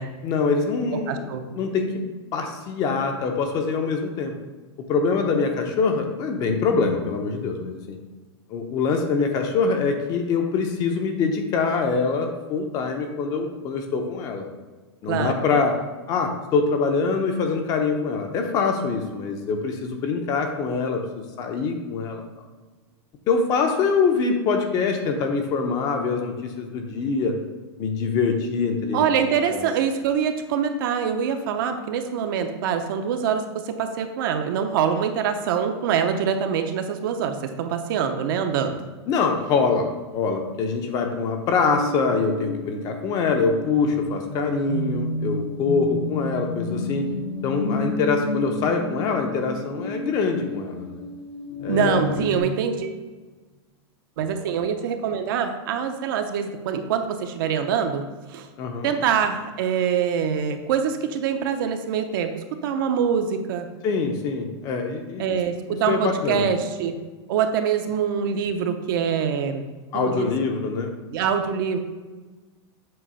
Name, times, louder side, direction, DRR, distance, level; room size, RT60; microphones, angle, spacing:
voice 1, 0.2-2.0 2.3-4.3 4.8-8.0 8.5-14.5 15.0-15.8 16.1-21.0 21.4-22.2 23.3-27.4 27.8-29.1 29.5-29.7 39.1-47.0 47.4-51.0 51.6-52.1 58.6-58.9 63.8-65.4 65.9-66.5 69.9-70.9, left 4 dB, 25° left, 4 dB, 0.7 m, -24 dB
voice 2, 0.9-1.4 15.1-15.3 28.9-38.8 51.7-53.0 54.2-58.0 58.3-58.5 58.8-63.7 65.2-66.9 67.3-69.7 69.9-70.3 71.1-71.8, right 7 dB, 50° right, 6 dB, 0.7 m, -24 dB
sound 1, 41.7-52.4, left 1 dB, 85° left, 2.1 m, -31 dB
7.7 x 3.0 x 5.6 m, 1.3 s
supercardioid pair, 160°, 15 cm